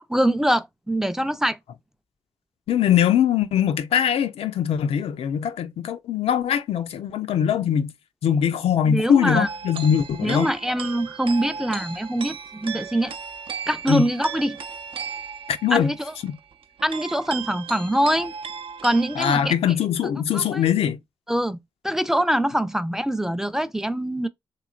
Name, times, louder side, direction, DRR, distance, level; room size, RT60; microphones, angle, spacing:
voice 1, 0.1-1.6 8.8-9.5 10.2-13.1 13.7-14.6 15.7-16.1 16.8-18.3 18.8-19.5 20.3-20.6 21.3-21.6 21.8-24.3, right 1 dB, 5° right, 0.4 m, -23 dB
voice 2, 2.7-7.9 8.2-10.5 13.9-14.1 15.5-15.9 16.2-16.3 19.2-21.0, left 9 dB, 75° left, 0.4 m, -22 dB
sound 1, 9.5-19.4, right 6 dB, 60° right, 0.5 m, -36 dB
3.0 x 3.0 x 2.4 m
supercardioid pair, 55°, 10 cm